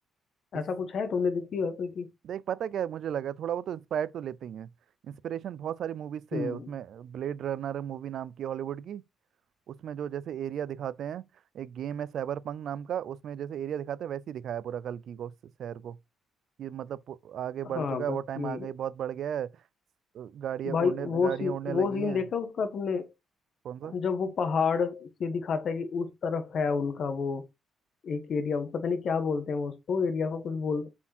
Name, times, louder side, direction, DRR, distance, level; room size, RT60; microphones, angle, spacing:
voice 1, 0.5-2.1 6.3-6.7 17.6-18.7 20.6-23.1 23.8-27.5 28.0-30.9, left 5 dB, 60° left, 1.4 m, -29 dB
voice 2, 2.2-4.7 5.1-9.0 9.7-11.2 11.5-15.3 15.6-16.0 16.6-19.5 20.1-22.2 23.6-23.9, right 9 dB, 70° right, 0.5 m, -35 dB
7.1 x 4.5 x 4.4 m
cardioid pair, 90°, 0 cm